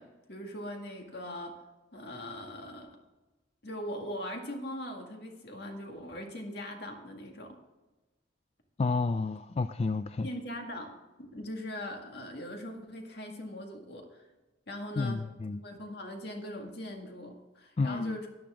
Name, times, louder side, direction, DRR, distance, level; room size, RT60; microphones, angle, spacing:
voice 1, 0.0-1.5 1.9-3.0 3.6-7.6 10.2-10.9 11.2-14.2 14.7-15.2 15.6-18.3, left 1 dB, 60° left, 2 dB, 2.0 m, -40 dB
voice 2, 8.8-10.3 15.0-15.6 17.8-18.2, left 3 dB, 35° left, 11 dB, 0.3 m, -30 dB
13.5 x 10.0 x 3.7 m, 1.1 s
head